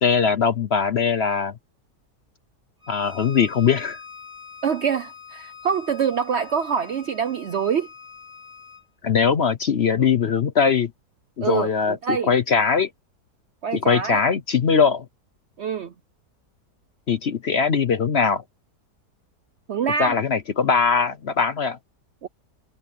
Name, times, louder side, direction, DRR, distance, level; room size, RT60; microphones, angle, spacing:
voice 1, 0.0-1.5 2.9-4.0 9.0-10.9 11.4-12.0 12.3-12.9 13.9-15.0 17.1-18.4 20.0-21.8, left 6 dB, 50° left, 0.9 m, -21 dB
Bowed string instrument, 2.8-8.9, left 6 dB, 20° right, 3.6 m, -44 dB
voice 2, 4.6-7.9 11.4-12.3 13.6-14.2 15.6-15.9 19.7-20.1 22.2-22.3, right 7 dB, 60° right, 0.7 m, -25 dB
omnidirectional pair, 1.8 m